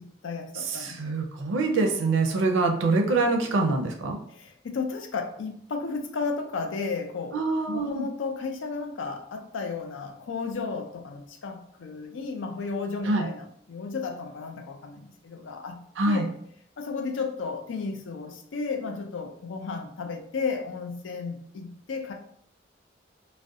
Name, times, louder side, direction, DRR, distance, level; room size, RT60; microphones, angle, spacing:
voice 1, 0.0-1.1 4.3-7.4 7.7-15.8 16.0-16.3 16.8-22.1, left 4 dB, 85° left, 4 dB, 0.4 m, -33 dB
voice 2, 0.7-4.2 7.3-8.1 13.0-13.3 16.0-16.3, right 3 dB, 85° right, 3 dB, 0.4 m, -25 dB
2.4 x 2.1 x 2.6 m, 0.65 s
head